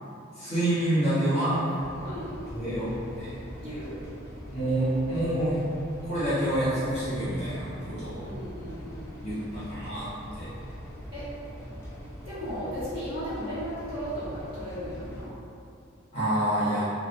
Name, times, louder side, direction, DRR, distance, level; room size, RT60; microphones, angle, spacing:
voice 1, 0.4-1.7 2.5-3.3 4.5-5.6 6.0-8.3 9.2-10.1 10.4-10.5 16.1-16.9, right 1 dB, 30° left, -13 dB, 1.0 m, -27 dB
sound 1, 1.8-15.3, equal, 15° left, 0.4 m, -42 dB
voice 2, 3.6-4.0 8.2-9.4 11.1-11.2 12.2-15.3, equal, 25° right, -15 dB, 1.1 m, -36 dB
2.4 x 2.1 x 2.5 m, 2.5 s
head